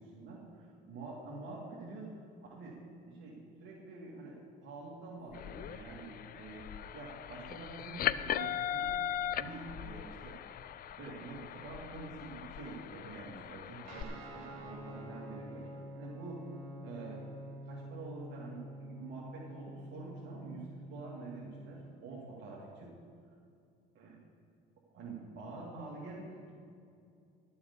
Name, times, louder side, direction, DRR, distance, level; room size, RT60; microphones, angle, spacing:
voice 1, 0.0-2.2 2.5-2.8 3.0-6.7 6.9-9.0 9.3-10.4 11.0-16.4 16.8-17.2 17.6-22.9 23.9-24.2 24.9-26.5, right 3 dB, 60° right, -5 dB, 2.5 m, -47 dB
sound 1, 5.3-14.0, left 10 dB, 45° left, 0.4 m, -39 dB
Guitar, 13.8-21.9, equal, 85° right, 2.2 m, -47 dB
12.5 x 7.1 x 6.9 m, 2.5 s
supercardioid pair, 90°, 21 cm